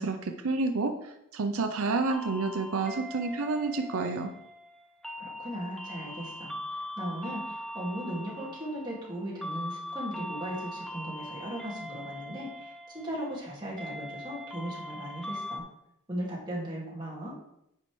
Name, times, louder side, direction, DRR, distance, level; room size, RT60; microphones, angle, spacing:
voice 1, 0.0-4.3, right 3 dB, 75° right, 6 dB, 0.6 m, -29 dB
sound 1, 2.1-15.6, left 1 dB, ahead, 0.4 m, -41 dB
voice 2, 5.2-15.6 16.1-17.3, equal, 20° right, -5 dB, 2.1 m, -37 dB
9.6 x 5.3 x 3.2 m, 0.80 s
head